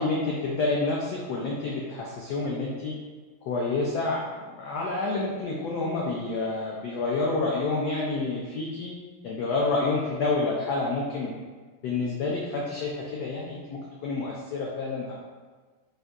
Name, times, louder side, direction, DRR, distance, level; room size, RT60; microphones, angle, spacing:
voice 1, 0.0-2.9 3.4-8.9 9.2-11.3 11.8-15.1, left 3 dB, 90° left, -3 dB, 0.8 m, -28 dB
3.7 x 2.2 x 3.5 m, 1.4 s
omnidirectional pair, 2.3 m